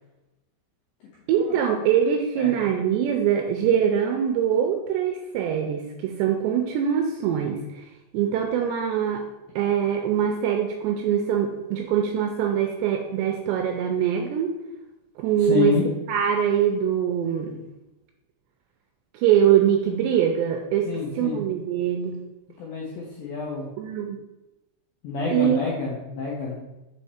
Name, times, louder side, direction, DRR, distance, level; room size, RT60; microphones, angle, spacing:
voice 1, 1.3-7.9 8.1-9.3 9.6-14.6 15.2-15.7 16.1-17.6 19.1-20.9 21.2-22.2 23.8-24.2 25.3-25.7, right 9 dB, 85° right, 3 dB, 2.5 m, -23 dB
voice 2, 15.4-15.9 20.9-21.4 22.6-23.7 25.0-26.6, left 5 dB, 80° left, -4 dB, 2.1 m, -28 dB
6.4 x 4.6 x 4.3 m, 1.0 s
omnidirectional pair, 5.5 m